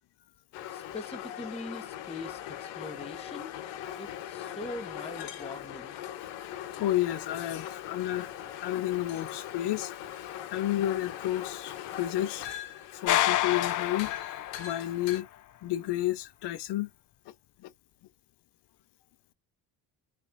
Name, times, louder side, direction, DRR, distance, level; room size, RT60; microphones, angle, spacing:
sound 1, 0.5-15.2, left 11 dB, 85° left, 1.3 m, -40 dB
voice 1, 0.7-3.5 4.0-5.9, left 2 dB, 15° left, 1.1 m, -42 dB
voice 2, 6.8-8.3 8.6-12.5 13.0-15.3 15.6-16.9 17.6-17.7, left 14 dB, 70° left, 1.0 m, -31 dB
sound 2, 13.1-15.0, left 13 dB, 45° left, 0.5 m, -28 dB
4.4 x 2.9 x 2.6 m
cardioid pair, 95°, 42 cm